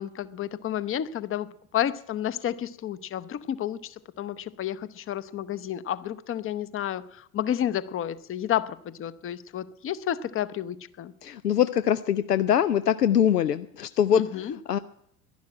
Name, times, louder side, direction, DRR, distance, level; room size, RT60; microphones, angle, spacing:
voice 1, 0.0-1.5 1.7-11.1 14.1-14.5, left 11 dB, 30° left, 15 dB, 0.8 m, -31 dB
voice 2, 11.2-14.8, left 9 dB, 85° left, 14 dB, 0.5 m, -23 dB
11.5 x 11.5 x 8.7 m, 0.73 s
figure-of-eight pair, 70°, 46 cm